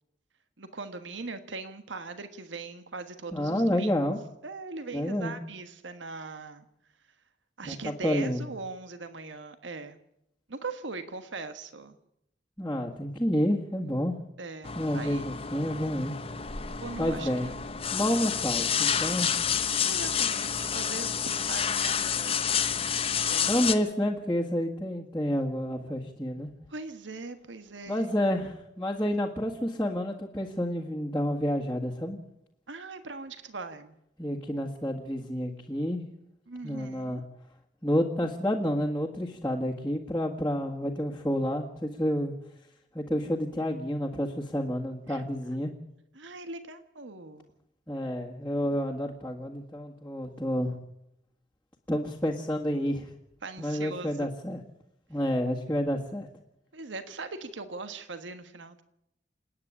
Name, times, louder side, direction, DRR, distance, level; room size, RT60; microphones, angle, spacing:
voice 1, 0.6-3.9 4.4-6.7 7.6-10.0 10.5-12.0 14.4-15.2 16.7-17.5 19.8-23.0 23.3-23.6 26.7-28.1 32.7-34.0 36.5-37.2 45.1-45.2 46.1-47.6 48.5-48.8 53.4-54.3 56.7-58.8, right 3 dB, 80° right, 10 dB, 1.4 m, -40 dB
voice 2, 3.3-4.2 4.9-5.4 7.6-8.4 12.6-14.2 14.8-16.1 17.0-17.5 17.9-19.3 23.5-26.5 27.9-32.2 34.2-36.0 36.6-37.2 37.8-42.3 42.9-45.7 47.9-50.8 51.9-53.1 53.6-54.6 55.1-56.3, equal, 10° left, -5 dB, 1.8 m, -29 dB
sound 1, 14.6-23.7, left 7 dB, 30° left, 1.0 m, -29 dB
28.0 x 9.8 x 9.8 m, 0.80 s
head